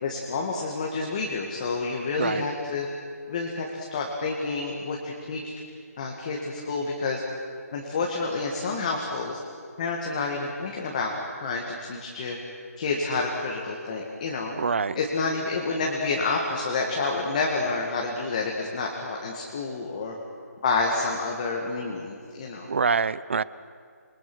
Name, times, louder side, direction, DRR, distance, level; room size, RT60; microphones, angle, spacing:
voice 1, 0.0-2.9 3.3-5.4 6.0-7.2 7.7-9.4 9.8-11.1 11.4-12.4 12.8-14.5 15.0-20.1 20.6-22.7, left 3 dB, 25° left, -1 dB, 2.2 m, -29 dB
voice 2, 14.5-15.0 22.7-23.4, right 5 dB, 50° right, 18 dB, 0.6 m, -25 dB
27.5 x 22.0 x 6.3 m, 2.2 s
hypercardioid pair, 175°, 9 cm